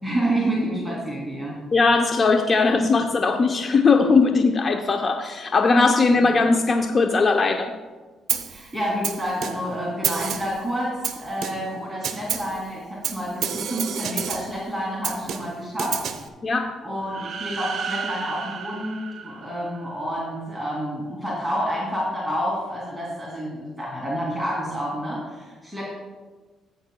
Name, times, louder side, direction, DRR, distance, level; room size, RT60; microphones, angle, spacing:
voice 1, 0.0-1.6 6.1-6.2 8.5-16.0 16.8-25.9, equal, 5° right, -6 dB, 2.6 m, -29 dB
voice 2, 1.7-7.7 16.4-16.7, left 4 dB, 40° left, 4 dB, 0.7 m, -19 dB
Snare drum, 8.3-8.6 9.0-9.7 10.0-10.6 11.0-11.7 12.0-12.6 13.0-14.6 15.0-16.3, right 8 dB, 70° right, 0.8 m, -29 dB
sound 1, 17.0-20.0, right 6 dB, 50° right, 2.1 m, -34 dB
15.5 x 9.2 x 2.3 m, 1.3 s
cardioid pair, 90°, 0 cm